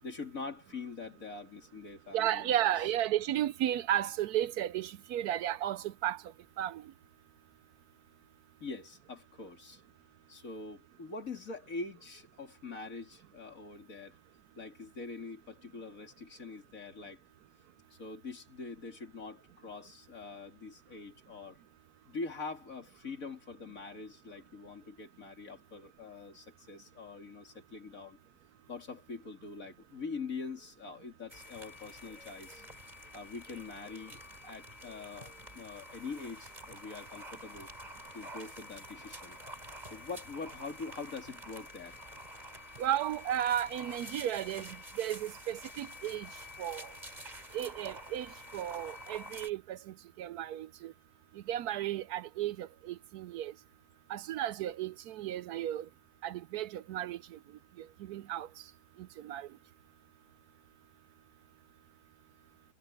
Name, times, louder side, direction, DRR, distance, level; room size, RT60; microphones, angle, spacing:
voice 1, 0.0-2.7 8.6-9.8 10.3-14.2 14.6-17.2 17.9-21.6 22.0-28.2 28.7-32.6 33.1-37.7 38.1-39.4 39.9-42.0, left 4 dB, 55° left, 3.4 m, -44 dB
voice 2, 2.1-6.2 6.6-6.8 42.8-46.3 46.6-46.9 47.5-50.9 51.5-53.5 54.1-55.8 56.2-57.4 57.8-58.5 59.2-59.5, right 12 dB, 75° right, 1.1 m, -34 dB
sound 1, 31.3-49.5, left 1 dB, 25° right, 4.5 m, -48 dB
omnidirectional pair, 1.7 m